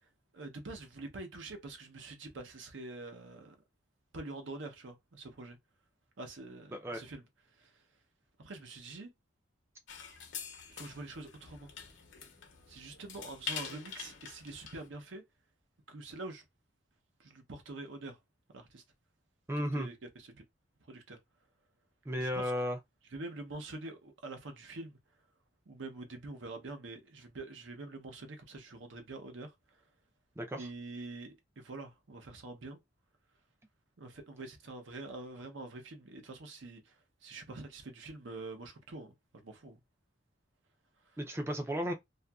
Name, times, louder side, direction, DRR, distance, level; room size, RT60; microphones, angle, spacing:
voice 1, 0.3-3.6 4.1-5.6 6.2-7.2 7.6-7.7 8.4-9.1 10.7-11.7 12.7-15.2 15.9-16.4 17.2-18.2 18.5-18.8 19.6-20.4 20.9-21.2 22.2-22.5 23.1-25.0 25.7-29.5 30.6-32.8 34.0-36.9 37.2-39.1 39.4-39.8, right 2 dB, 70° right, 0.7 m, -45 dB
voice 2, 6.7-7.0 19.5-19.9 22.1-22.8 30.4-30.7 41.2-41.9, equal, 15° right, 0.4 m, -34 dB
sound 1, 9.9-14.9, left 6 dB, 65° left, 0.7 m, -45 dB
2.7 x 2.4 x 2.3 m
head